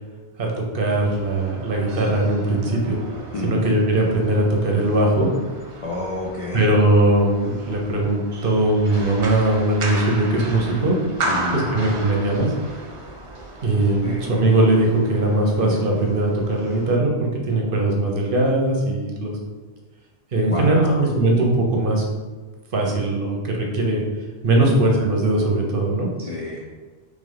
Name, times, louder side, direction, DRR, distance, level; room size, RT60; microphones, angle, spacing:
voice 1, 0.4-3.0 3.4-5.3 6.5-11.0 11.5-12.5 13.6-19.4 20.3-22.0 22.7-24.0 24.4-26.1, right 2 dB, 60° right, 0 dB, 0.9 m, -20 dB
sound 1, 0.9-17.0, right 2 dB, 40° right, 0.5 m, -35 dB
voice 2, 3.3-3.7 5.8-6.7 11.2-11.7 14.0-14.3 20.5-21.1 24.6-24.9 26.2-26.6, left 3 dB, 50° left, -3 dB, 0.4 m, -29 dB
3.4 x 3.2 x 3.8 m, 1.3 s
omnidirectional pair, 1.1 m